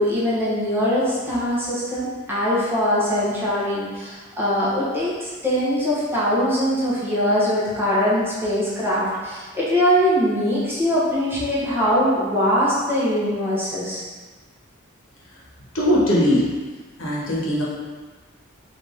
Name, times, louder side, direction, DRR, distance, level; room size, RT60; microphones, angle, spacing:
voice 1, 0.0-14.0, equal, 10° right, -9 dB, 1.1 m, -22 dB
voice 2, 15.7-16.4 17.0-17.6, equal, 75° left, -6 dB, 1.1 m, -19 dB
4.2 x 2.8 x 3.4 m, 1.3 s
head